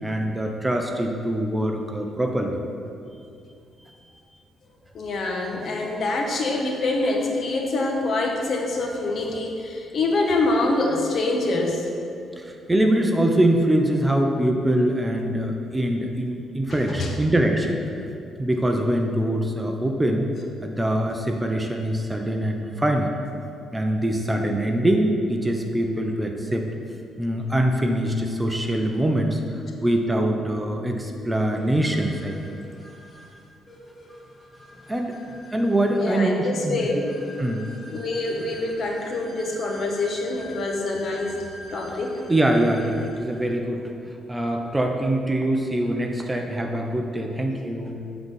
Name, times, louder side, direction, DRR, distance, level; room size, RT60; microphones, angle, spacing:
voice 1, 0.0-2.6 12.4-17.8 18.4-20.3 20.6-23.1 23.7-26.7 27.2-32.4 34.9-35.2 35.5-36.9 37.4-37.7 37.9-38.0 42.3-43.9 44.3-48.0, right 1 dB, 15° right, 3 dB, 0.6 m, -23 dB
voice 2, 4.9-11.9 16.9-17.1 24.5-24.6 35.9-37.1 37.9-41.4 41.7-42.2, left 2 dB, 55° left, 1 dB, 1.1 m, -25 dB
sound 1, 31.5-43.4, equal, 30° left, 1.4 m, -45 dB
8.0 x 4.0 x 5.4 m, 2.5 s
cardioid pair, 90°, 0 cm